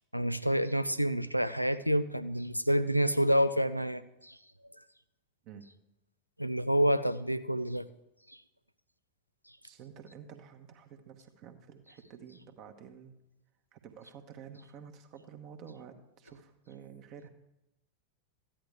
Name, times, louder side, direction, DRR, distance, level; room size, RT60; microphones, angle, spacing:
voice 1, 0.1-4.4 6.4-7.9, equal, 90° right, 14 dB, 0.4 m, -28 dB
voice 2, 9.6-13.2 13.7-17.3, right 7 dB, 40° right, 5 dB, 1.1 m, -50 dB
14.0 x 10.0 x 3.4 m, 0.88 s
figure-of-eight pair, 90°, 0 cm